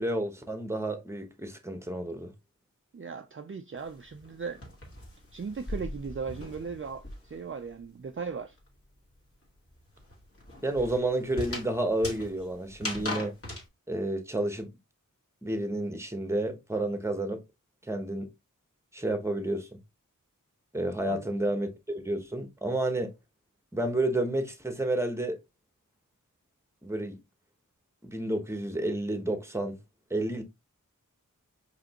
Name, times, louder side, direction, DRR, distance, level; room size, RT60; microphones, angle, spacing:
voice 1, 0.0-2.3 10.6-13.4 13.9-14.7 15.4-17.4 17.9-18.3 18.9-19.8 20.7-23.1 23.7-25.4 26.8-27.2 28.0-29.8 30.1-30.4, right 1 dB, 10° right, 1.1 m, -30 dB
voice 2, 2.9-4.6 5.3-8.6 21.1-21.2, right 5 dB, 40° right, 0.5 m, -37 dB
sound 1, 3.8-7.5 7.8-13.7, left 1 dB, 45° left, 2.0 m, -40 dB
5.1 x 3.4 x 2.9 m
wide cardioid pair, 55°, 33 cm